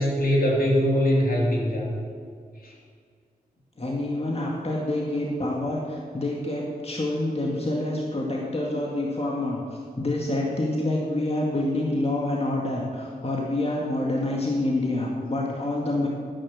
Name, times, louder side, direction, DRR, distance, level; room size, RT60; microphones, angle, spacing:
voice 1, 0.0-1.9 2.6-2.7, equal, 65° left, -2 dB, 3.3 m, -22 dB
voice 2, 3.8-9.6 10.0-16.1, left 1 dB, 40° left, -2 dB, 2.3 m, -27 dB
10.5 x 10.5 x 7.4 m, 2.1 s
cardioid pair, 50°, 16 cm